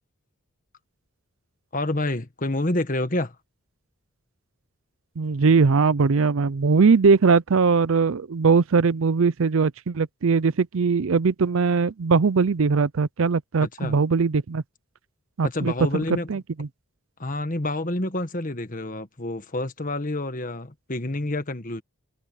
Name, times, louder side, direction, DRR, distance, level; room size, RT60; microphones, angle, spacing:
voice 1, 1.7-3.4 13.6-14.0 15.4-16.3 17.2-21.8, left 2 dB, 40° left, 1.5 m, -28 dB
voice 2, 5.2-14.6 15.4-16.7, right 4 dB, 70° right, 0.5 m, -20 dB
head